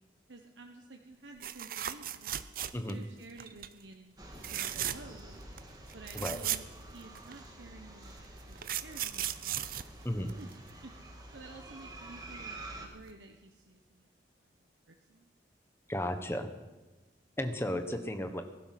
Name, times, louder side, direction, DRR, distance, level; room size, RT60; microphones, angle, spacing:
voice 1, 0.3-2.4 2.7-5.4 5.9-9.7 10.4-10.5 10.8-10.9 11.3-14.1 14.4-15.3, right 2 dB, 90° right, 3 dB, 1.1 m, -52 dB
sound 1, 1.4-3.0 3.4-3.7 4.4-5.2 5.6-5.7 5.9-7.4 8.2-10.7 12.6-12.8 13.1-13.2, right 11 dB, 50° right, 0.6 m, -37 dB
sound 2, 4.2-12.9, right 2 dB, 20° right, 2.2 m, -49 dB
voice 2, 15.9-16.5 17.4-18.4, left 1 dB, 15° left, 7 dB, 1.2 m, -34 dB
20.0 x 12.0 x 6.0 m, 1.1 s
head